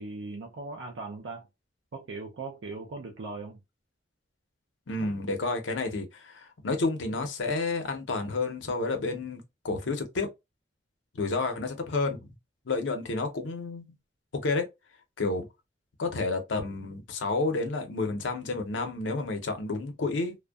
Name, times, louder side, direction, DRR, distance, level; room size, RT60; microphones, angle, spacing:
voice 1, 0.0-1.5 1.9-3.6, right 3 dB, 85° right, 0.5 m, -39 dB
voice 2, 4.9-10.3 11.1-12.3 12.7-13.8 14.3-14.7 15.2-15.5 16.0-20.4, left 3 dB, 90° left, 0.6 m, -30 dB
2.6 x 2.1 x 2.2 m
head